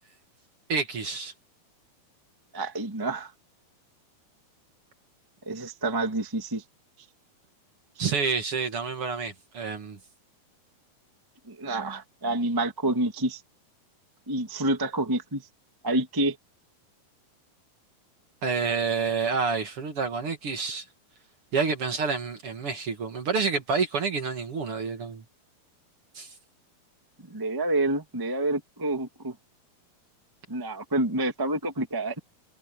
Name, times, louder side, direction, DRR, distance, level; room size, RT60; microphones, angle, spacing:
voice 1, 0.7-1.3 8.0-10.0 18.4-20.8 21.5-25.2 26.1-26.3, right 5 dB, 50° right, 2.0 m, -28 dB
voice 2, 2.5-3.3 5.4-6.6 11.5-13.4 14.3-15.4 15.8-16.4 27.3-29.3 30.5-32.2, right 2 dB, 15° right, 0.6 m, -28 dB
omnidirectional pair, 4.4 m